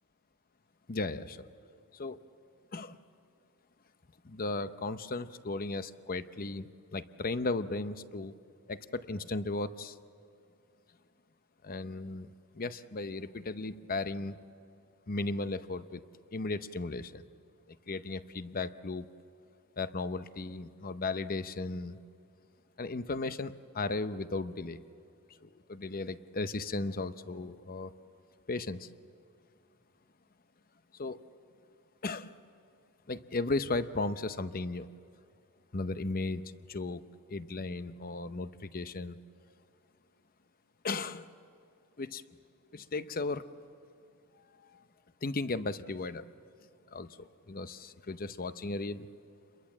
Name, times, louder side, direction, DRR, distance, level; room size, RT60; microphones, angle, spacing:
voice 1, 0.9-1.5 1.9-2.2 2.7-3.0 4.2-8.4 8.7-9.9 11.6-14.4 15.1-16.0 16.3-17.2 17.7-19.1 19.8-22.0 22.8-24.8 25.4-27.9 28.5-28.9 31.0-31.2 32.0-32.3 33.1-34.9 35.7-36.4 36.7-37.0 37.3-39.2 40.8-41.3 42.0-42.2 42.7-43.5 44.7-44.8 45.2-46.3 46.9-49.1, left 3 dB, 40° left, 12 dB, 0.8 m, -36 dB
29.0 x 22.5 x 7.4 m, 2.6 s
head